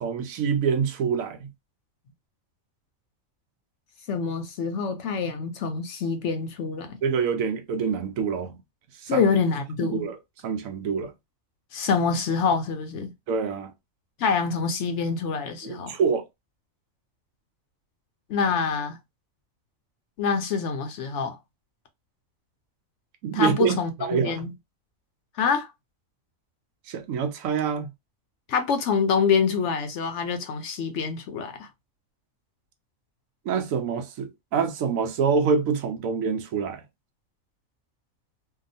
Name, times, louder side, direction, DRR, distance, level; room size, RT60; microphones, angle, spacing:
voice 1, 0.0-1.5 7.0-8.6 9.0-9.3 9.8-10.2 10.4-11.1 13.3-13.7 15.6-16.2 23.2-24.5 26.9-27.9 33.5-36.8, right 6 dB, 80° right, 1.0 m, -26 dB
voice 2, 4.1-7.0 9.1-10.1 11.7-13.1 14.2-16.0 18.3-19.0 20.2-21.4 23.3-24.5 25.4-25.7 28.5-31.7, left 5 dB, 65° left, 0.8 m, -26 dB
2.7 x 2.3 x 2.5 m
omnidirectional pair, 1.4 m